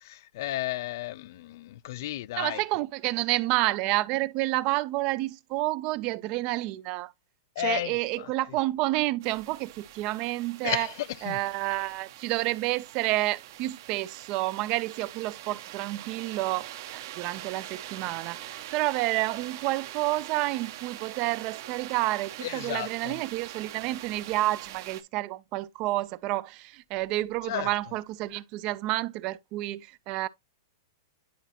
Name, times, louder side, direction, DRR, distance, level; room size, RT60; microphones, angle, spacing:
voice 1, 0.0-2.6 7.6-8.3 10.6-11.4 22.4-23.2 27.5-27.7, left 14 dB, 55° left, 0.3 m, -33 dB
voice 2, 2.4-7.1 7.6-10.9 11.2-30.3, right 18 dB, 35° right, 0.4 m, -29 dB
sound 1, 9.2-25.0, right 13 dB, 55° right, 0.9 m, -43 dB
10.5 x 4.1 x 2.8 m
hypercardioid pair, 145°, 2 cm